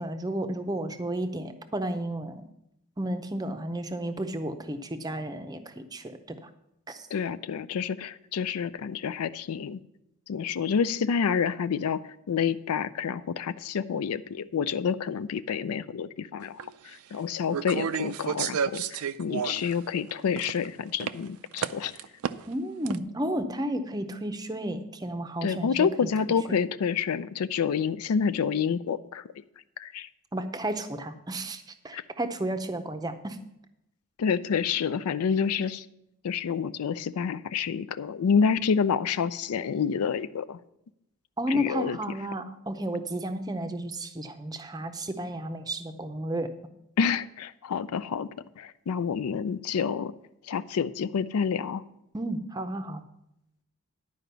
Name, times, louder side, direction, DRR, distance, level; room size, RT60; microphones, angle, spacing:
voice 1, 0.0-2.5 3.0-6.5 6.9-7.1 22.5-26.1 30.3-33.4 41.4-46.5 52.1-53.0, right 1 dB, 15° right, 8 dB, 0.6 m, -32 dB
voice 2, 7.1-9.8 10.3-16.6 16.8-21.9 25.4-29.2 29.8-30.1 31.9-32.0 34.2-35.8 36.2-40.6 41.5-42.0 47.0-48.3 48.6-50.1 50.5-51.8, left 6 dB, 80° left, 14 dB, 0.4 m, -28 dB
sound 1, 16.6-16.7 17.5-19.8 20.1-20.7 21.0-21.1 21.6-22.5 22.9-23.0, right 7 dB, 80° right, 0.4 m, -31 dB
11.0 x 5.0 x 6.7 m, 0.82 s
head